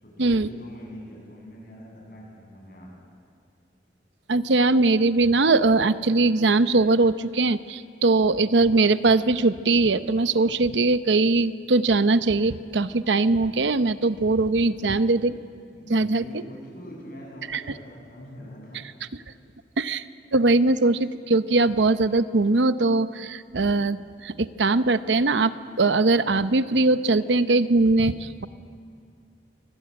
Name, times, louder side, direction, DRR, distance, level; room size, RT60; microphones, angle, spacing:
voice 1, 0.0-2.9 14.6-15.1 15.7-18.8, equal, 50° left, -1 dB, 8.0 m, -43 dB
voice 2, 4.3-15.4 15.9-16.2 17.5-17.6 19.8-20.0 20.3-28.5, right 3 dB, 90° right, 12 dB, 0.8 m, -21 dB
25.5 x 19.5 x 8.8 m, 2.3 s
head